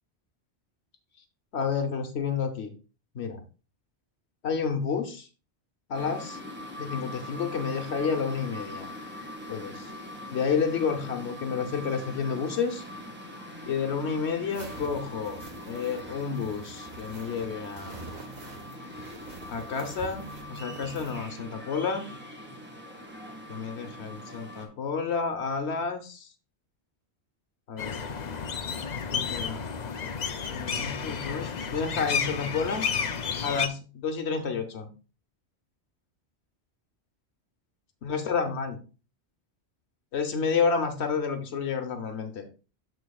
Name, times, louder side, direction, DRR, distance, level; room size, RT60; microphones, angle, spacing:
voice 1, 1.5-2.7 3.1-3.4 4.4-5.3 5.9-8.9 9.5-9.9 10.3-12.8 13.7-15.4 15.6-18.1 19.5-22.1 23.5-26.3 27.7-28.0 28.9-29.6 30.5-32.8 33.4-34.9 38.0-38.8 40.1-42.4, left 5 dB, 90° left, 5 dB, 1.2 m, -30 dB
sound 1, 5.9-24.7, left 1 dB, 10° right, 1.5 m, -42 dB
sound 2, 14.5-21.3, right 4 dB, 45° right, 1.3 m, -46 dB
sound 3, 27.8-33.7, left 6 dB, 45° left, 0.7 m, -31 dB
13.0 x 4.5 x 2.3 m, 0.34 s
omnidirectional pair, 1.1 m